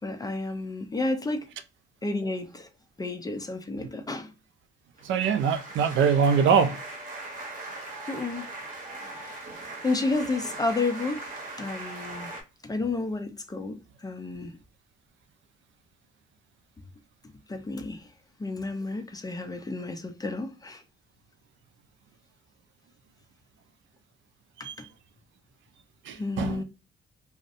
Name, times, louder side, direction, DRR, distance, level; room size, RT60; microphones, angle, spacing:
voice 1, 0.0-1.5 2.0-2.7 3.0-4.3 8.1-8.5 9.2-9.4 9.8-12.3 12.6-14.5 17.5-18.1 18.4-20.8 24.6-24.9 26.2-26.6, left 3 dB, 20° left, 0.5 m, -31 dB
sound 1, 5.0-12.4, right 2 dB, 45° right, 0.9 m, -40 dB
voice 2, 5.0-6.8 24.6-24.7 26.1-26.6, right 6 dB, 70° right, 0.4 m, -23 dB
2.5 x 2.0 x 2.5 m
cardioid pair, 90°, 20 cm